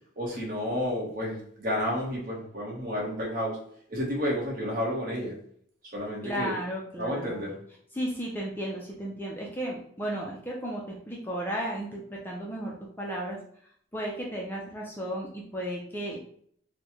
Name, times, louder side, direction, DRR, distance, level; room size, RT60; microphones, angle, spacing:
voice 1, 0.2-3.6 3.9-5.3 5.9-6.5 7.0-7.6, equal, 45° right, -3 dB, 1.2 m, -31 dB
voice 2, 6.2-7.4 7.9-13.4 13.9-16.2, equal, 10° left, -3 dB, 0.4 m, -34 dB
4.3 x 2.2 x 3.0 m, 0.63 s
head